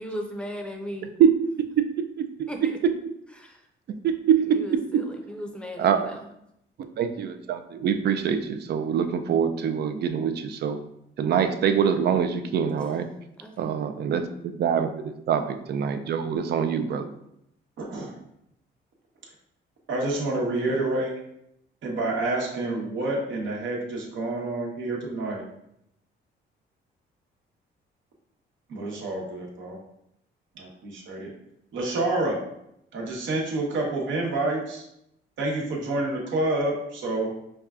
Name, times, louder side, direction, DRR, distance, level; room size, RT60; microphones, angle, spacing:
voice 1, 0.0-1.1 2.5-2.8 3.4-3.7 4.5-6.3 13.4-13.7, equal, 5° left, 2 dB, 0.6 m, -37 dB
voice 2, 4.0-4.7 5.8-6.1 6.8-10.8 11.2-13.1 13.6-17.1, right 7 dB, 55° right, 8 dB, 0.4 m, -24 dB
voice 3, 17.8-18.1 19.9-21.1 21.8-25.4 28.7-29.8 30.6-31.3 31.7-32.4 32.9-34.9 35.4-37.3, right 2 dB, 75° right, -1 dB, 1.0 m, -28 dB
5.2 x 2.3 x 2.4 m, 0.78 s
cardioid pair, 90°, 20 cm